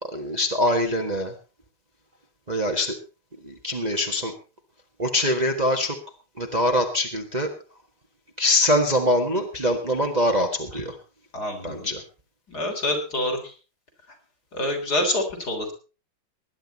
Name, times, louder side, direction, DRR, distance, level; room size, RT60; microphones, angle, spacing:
voice 1, 0.0-1.3 2.5-3.0 3.4-4.3 5.0-6.0 6.4-7.5 8.4-11.0 11.6-12.0, left 1 dB, 20° right, 4 dB, 1.4 m, -23 dB
voice 2, 11.3-11.9 12.5-13.5 14.5-15.7, left 1 dB, 45° left, 2 dB, 4.2 m, -27 dB
20.0 x 10.5 x 4.1 m, 0.33 s
omnidirectional pair, 2.3 m